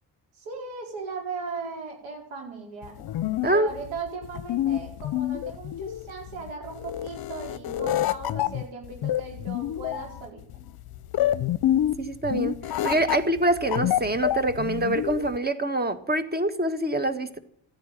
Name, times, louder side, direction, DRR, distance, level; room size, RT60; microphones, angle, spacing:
voice 1, 0.4-3.0 3.4-10.4, right 4 dB, 80° right, 1 dB, 4.6 m, -37 dB
sound 1, 2.8-15.4, left 12 dB, 55° left, 0.7 m, -28 dB
voice 2, 12.0-12.6 12.8-17.4, right 1 dB, 20° right, 11 dB, 1.7 m, -25 dB
14.0 x 10.0 x 9.0 m, 0.67 s
supercardioid pair, 65°, 46 cm